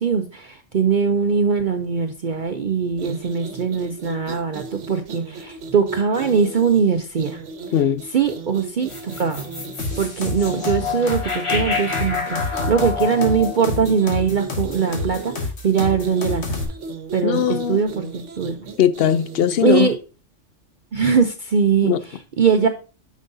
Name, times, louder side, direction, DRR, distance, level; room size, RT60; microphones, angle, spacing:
voice 1, 0.0-7.4 8.1-9.4 10.0-16.5 17.1-18.6 19.6-20.0 20.9-22.7, right 6 dB, 50° right, 0.7 m, -21 dB
sound 1, 2.9-20.0, right 4 dB, 75° right, 1.2 m, -36 dB
voice 2, 7.7-8.0 17.2-17.8 18.8-19.9 21.8-22.0, left 9 dB, 60° left, 0.7 m, -19 dB
sound 2, 8.9-15.2, left 5 dB, 25° left, 1.0 m, -29 dB
sound 3, 9.8-16.6, left 3 dB, 85° left, 1.9 m, -28 dB
9.0 x 6.3 x 2.6 m
omnidirectional pair, 1.2 m